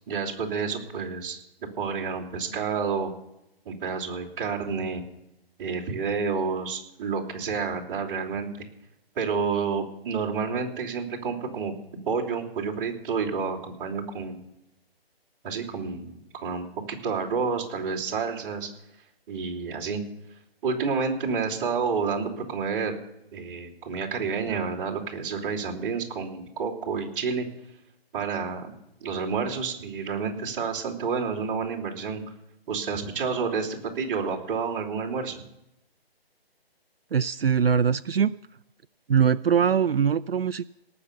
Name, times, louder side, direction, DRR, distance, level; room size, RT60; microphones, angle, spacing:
voice 1, 0.1-1.4 1.8-3.1 3.6-5.0 5.6-8.5 9.1-11.7 12.0-14.4 15.4-18.7 19.3-20.0 20.6-22.9 23.3-27.5 28.1-28.7 29.0-32.2 32.7-35.4, right 5 dB, 15° right, -6 dB, 3.1 m, -29 dB
voice 2, 37.1-38.3 39.1-40.6, right 7 dB, 65° right, 13 dB, 0.5 m, -22 dB
18.5 x 6.8 x 6.9 m, 0.87 s
figure-of-eight pair, 155°, 31 cm